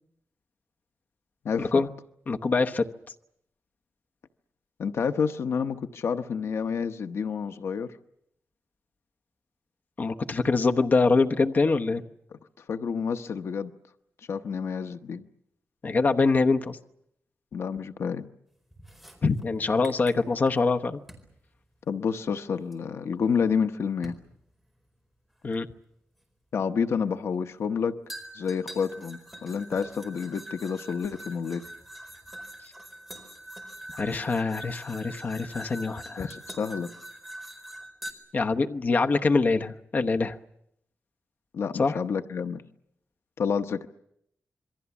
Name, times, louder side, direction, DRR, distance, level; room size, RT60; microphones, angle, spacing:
voice 1, 1.6-1.9 2.3-2.8 10.0-12.0 15.8-16.8 19.2-21.0 25.4-25.7 33.9-36.3 38.3-40.4 41.8-42.0, left 3 dB, 40° left, 5 dB, 1.0 m, -24 dB
voice 2, 4.8-7.9 12.3-12.4 12.7-13.7 14.3-15.2 17.5-18.3 21.9-24.2 26.5-28.0 28.3-31.7 36.2-36.9 41.5-42.6 43.4-43.9, left 6 dB, 75° left, 9 dB, 0.9 m, -29 dB
sound 1, 18.7-20.7 21.1-21.3 22.7-22.8 24.0-24.3 25.5-25.6 28.1-38.1, right 1 dB, ahead, 4.5 m, -44 dB
27.0 x 23.0 x 7.2 m, 0.76 s
wide cardioid pair, 175°, 5 cm